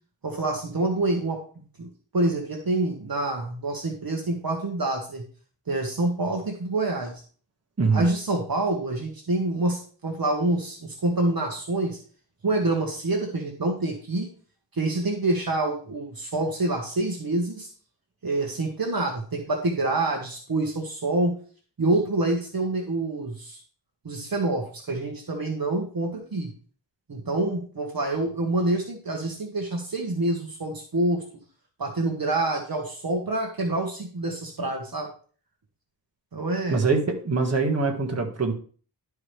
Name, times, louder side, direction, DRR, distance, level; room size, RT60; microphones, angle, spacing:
voice 1, 0.2-1.4 1.8-1.9 2.1-5.2 5.7-7.2 7.9-12.0 12.4-14.3 14.7-17.7 18.2-21.4 21.8-23.6 24.0-26.5 27.1-31.2 31.8-35.1 36.3-36.9, right 2 dB, 55° right, 2 dB, 1.4 m, -27 dB
voice 2, 36.7-38.5, right 4 dB, 35° right, 1 dB, 1.7 m, -23 dB
12.0 x 4.8 x 3.3 m, 0.42 s
wide cardioid pair, 90°, 43 cm